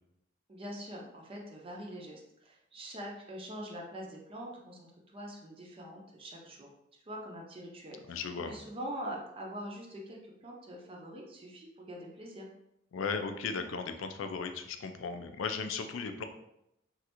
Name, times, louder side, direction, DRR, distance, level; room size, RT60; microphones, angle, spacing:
voice 1, 0.5-6.7 7.1-12.5, equal, 30° right, -1 dB, 0.5 m, -44 dB
voice 2, 8.1-8.6 12.9-16.2, left 5 dB, 80° left, 7 dB, 0.4 m, -36 dB
3.2 x 2.5 x 2.9 m, 0.82 s
head